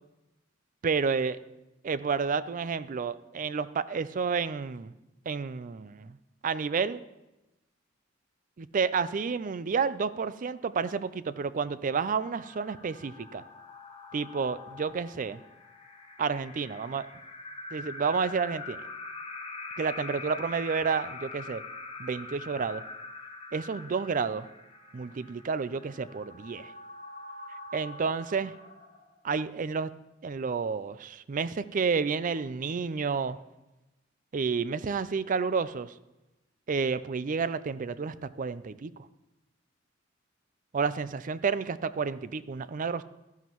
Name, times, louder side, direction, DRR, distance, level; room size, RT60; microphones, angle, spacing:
voice 1, 0.8-1.4 1.8-4.9 5.3-6.2 6.4-7.0 8.6-13.4 14.1-15.4 16.2-17.0 17.7-18.8 19.8-21.6 22.0-22.8 23.5-24.5 24.9-26.7 27.7-28.5 29.2-29.9 30.2-33.4 34.3-35.9 36.7-38.9 40.7-43.0, right 5 dB, 40° right, 15 dB, 0.4 m, -30 dB
sound 1, 11.9-29.3, left 3 dB, 30° left, 1.1 m, -44 dB
13.0 x 11.0 x 3.0 m, 0.98 s
head